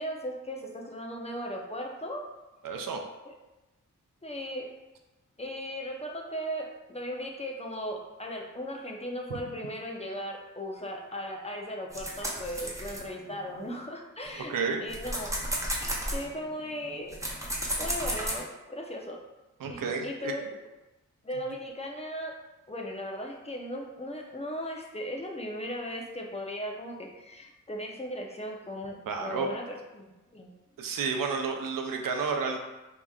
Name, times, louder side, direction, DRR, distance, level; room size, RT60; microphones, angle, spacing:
voice 1, 0.0-2.2 3.3-3.4 4.2-4.7 5.4-14.5 14.8-15.4 15.8-17.2 17.8-19.2 19.7-20.5 21.2-22.4 22.7-30.1 30.3-30.5, equal, 20° left, 0 dB, 0.7 m, -37 dB
voice 2, 2.6-3.0 14.5-14.8 19.6-20.3 29.1-29.5 30.8-32.6, right 5 dB, 85° right, 3 dB, 0.6 m, -31 dB
sound 1, 11.9-13.7 14.3-18.4, right 1 dB, 10° right, 0.9 m, -33 dB
4.8 x 2.9 x 2.4 m, 1.1 s
cardioid pair, 60°, 32 cm